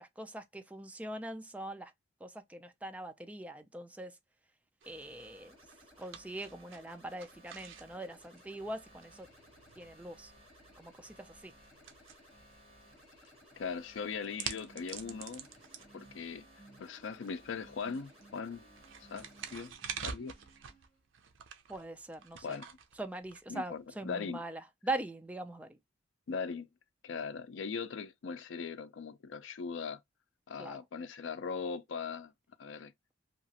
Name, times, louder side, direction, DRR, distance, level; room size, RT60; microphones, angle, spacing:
voice 1, 0.0-1.9 2.2-4.1 4.9-5.5 6.0-9.3 9.8-10.3 10.8-11.5 21.7-22.6 23.0-25.8 30.6-30.8, right 2 dB, 5° right, 0.3 m, -42 dB
sound 1, 4.8-19.7, equal, 30° right, 1.9 m, -60 dB
sound 2, 4.8-24.0, right 7 dB, 75° right, 0.5 m, -49 dB
sound 3, 7.9-21.1, right 2 dB, 30° left, 1.2 m, -62 dB
voice 2, 13.6-15.5 15.9-16.5 16.8-18.7 19.0-20.3 22.4-22.6 23.5-24.4 26.3-26.7 27.0-30.0 30.5-32.3 32.6-32.9, left 5 dB, 70° left, 0.4 m, -40 dB
2.9 x 2.4 x 2.7 m
head